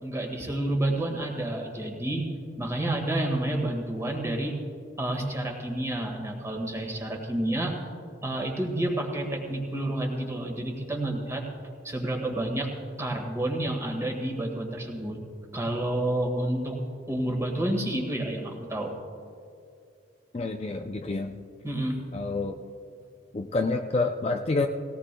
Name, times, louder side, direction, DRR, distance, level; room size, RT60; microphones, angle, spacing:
voice 1, 0.0-2.3 2.6-4.5 5.0-7.8 8.2-11.4 11.8-12.7 13.0-15.2 15.5-16.8 17.1-18.9 21.6-22.1, right 1 dB, 15° right, 1 dB, 1.7 m, -29 dB
voice 2, 20.3-21.3 22.1-22.6 23.3-24.7, left 3 dB, 35° left, 4 dB, 0.5 m, -28 dB
19.0 x 17.5 x 2.3 m, 2.4 s
head